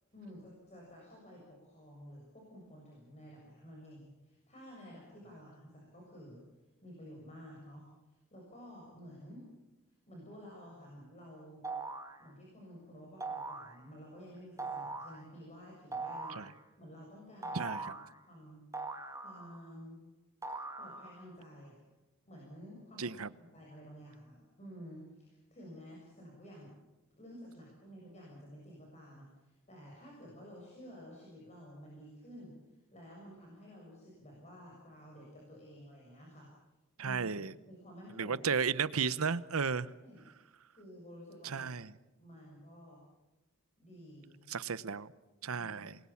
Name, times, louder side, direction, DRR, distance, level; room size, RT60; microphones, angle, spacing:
voice 1, 0.1-6.4 6.8-9.5 10.1-11.6 12.2-16.4 16.8-18.0 18.2-18.6 19.2-20.0 20.8-21.8 22.3-23.2 23.5-26.7 27.2-36.5 37.0-38.4 40.0-40.2 40.7-41.7 42.2-43.0 43.8-44.4 45.5-45.9, equal, 30° left, 7.0 m, -52 dB
sound 1, 11.6-12.2 13.2-13.8 14.6-15.2 15.9-16.5 17.4-18.1 18.7-19.7 20.4-21.3, right 3 dB, 15° right, 1.8 m, -41 dB
voice 2, 17.5-17.9 23.0-23.3 37.0-37.5 38.2-39.9 41.4-41.9 44.5-45.1 45.4-46.0, right 5 dB, 80° right, 0.9 m, -34 dB
27.5 x 22.0 x 7.2 m
head